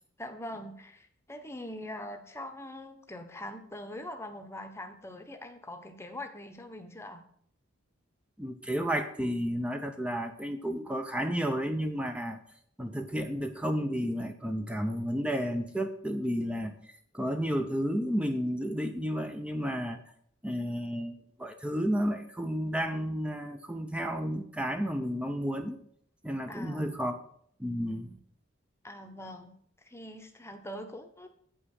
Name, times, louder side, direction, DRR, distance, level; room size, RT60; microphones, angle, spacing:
voice 1, 0.2-7.2 26.5-27.0 28.8-29.6 29.8-31.3, left 1 dB, 15° left, 6 dB, 1.0 m, -43 dB
voice 2, 8.4-12.4 12.8-16.8 17.1-20.0 20.4-25.8 26.2-27.1 27.6-28.2, equal, 5° right, 6 dB, 0.7 m, -32 dB
8.6 x 5.6 x 6.4 m, 0.63 s
head